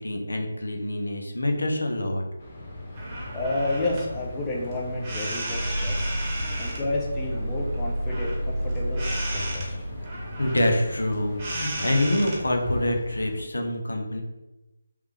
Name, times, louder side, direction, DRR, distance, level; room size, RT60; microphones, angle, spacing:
voice 1, 0.0-2.2 10.4-14.2, left 1 dB, 80° left, 2 dB, 0.8 m, -26 dB
sound 1, 2.4-13.0, left 1 dB, 40° left, 1.3 m, -41 dB
sound 2, 2.9-13.4, right 1 dB, 25° right, 1.1 m, -36 dB
voice 2, 3.3-6.1 6.6-9.9, left 2 dB, 15° left, -3 dB, 0.7 m, -31 dB
sound 3, 5.5-10.9, equal, 45° right, 0.4 m, -31 dB
3.3 x 3.2 x 3.3 m, 1.0 s
figure-of-eight pair, 155°, 0 cm